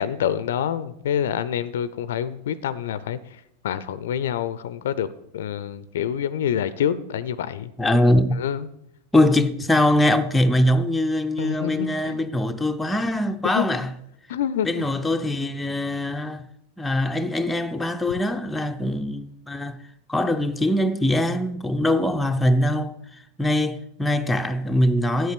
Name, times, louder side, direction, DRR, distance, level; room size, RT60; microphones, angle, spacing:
voice 1, 0.0-3.2 3.6-5.1 5.3-7.7 8.4-8.7 11.4-12.2 13.5-13.7 14.3-14.8, left 9 dB, 60° left, 0.5 m, -27 dB
voice 2, 7.8-8.4 9.1-13.9 14.6-16.5 16.8-19.8 20.1-23.0 23.4-25.3, left 1 dB, 5° left, 0.6 m, -22 dB
8.1 x 8.0 x 6.7 m
figure-of-eight pair, 90°, 0 cm